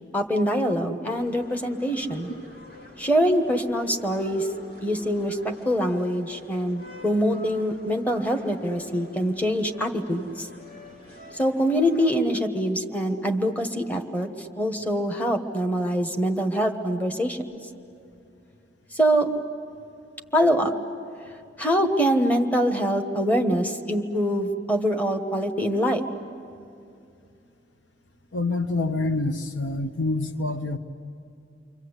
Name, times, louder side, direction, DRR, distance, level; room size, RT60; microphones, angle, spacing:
voice 1, 0.1-2.3 3.0-4.5 4.8-10.5 11.3-17.4 18.9-19.3 20.3-20.7 21.6-26.0, equal, 10° left, 4 dB, 1.3 m, -24 dB
sound 1, 1.1-12.2, left 2 dB, 55° left, 2.8 m, -46 dB
voice 2, 28.3-30.8, left 2 dB, 90° left, 7 dB, 1.2 m, -26 dB
29.5 x 24.5 x 8.2 m, 2.5 s
head